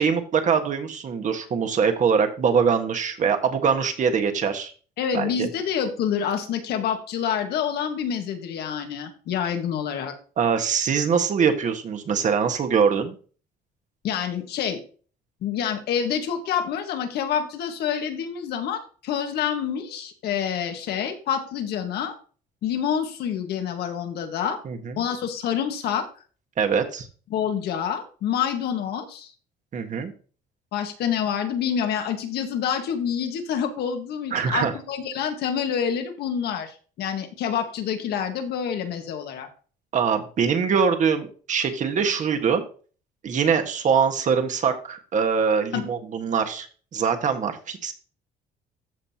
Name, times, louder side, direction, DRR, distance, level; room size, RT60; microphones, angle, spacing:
voice 1, 0.0-4.7 5.1-5.5 10.4-13.1 24.6-25.0 26.6-27.1 29.7-30.1 34.3-34.7 39.9-42.6 43.2-46.7 46.9-47.9, right 6 dB, 45° right, 6 dB, 1.6 m, -23 dB
voice 2, 5.0-10.1 14.0-14.8 15.4-22.1 22.6-24.6 25.0-26.1 27.3-29.3 30.7-39.5 45.7-45.9, left 8 dB, 70° left, 6 dB, 1.7 m, -27 dB
14.0 x 5.4 x 2.9 m, 0.40 s
cardioid pair, 110°, 17 cm